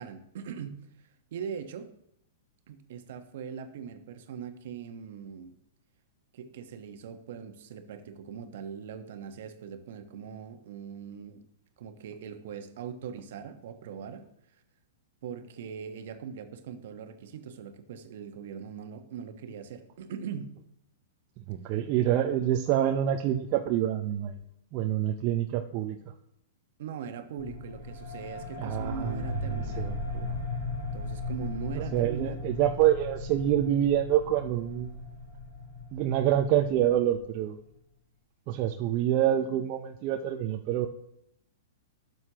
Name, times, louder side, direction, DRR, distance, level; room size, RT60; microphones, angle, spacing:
voice 1, 0.0-1.9 2.7-5.5 6.3-11.4 11.8-14.2 15.2-20.5 26.8-30.2 30.9-32.4, right 7 dB, 60° right, 7 dB, 1.2 m, -41 dB
voice 2, 21.4-24.4 24.7-26.0 28.6-30.3 31.8-35.0 35.9-37.6 38.5-40.9, right 11 dB, 40° right, 3 dB, 0.7 m, -27 dB
sound 1, 27.4-37.6, left 3 dB, 80° left, 3.4 m, -37 dB
12.5 x 7.9 x 3.0 m, 0.78 s
hypercardioid pair, 115°, 0 cm